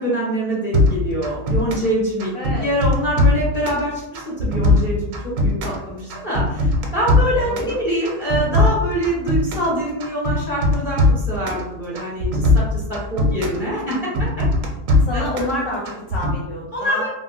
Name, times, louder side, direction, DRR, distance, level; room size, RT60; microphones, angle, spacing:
voice 1, 0.0-2.3 2.6-14.3 15.1-15.2 16.7-17.1, equal, 30° left, -8 dB, 1.0 m, -24 dB
sound 1, 0.7-1.9 2.2-3.8 4.1-5.8 6.1-7.7 8.0-9.7 10.0-11.6 12.0-13.6 13.9-15.5 15.9-16.3, left 1 dB, 85° right, 1.1 m, -19 dB
voice 2, 2.2-2.7 7.5-7.8 13.2-14.3 15.0-17.1, left 1 dB, 70° left, -3 dB, 0.9 m, -29 dB
3.6 x 2.0 x 2.3 m, 0.90 s
omnidirectional pair, 1.5 m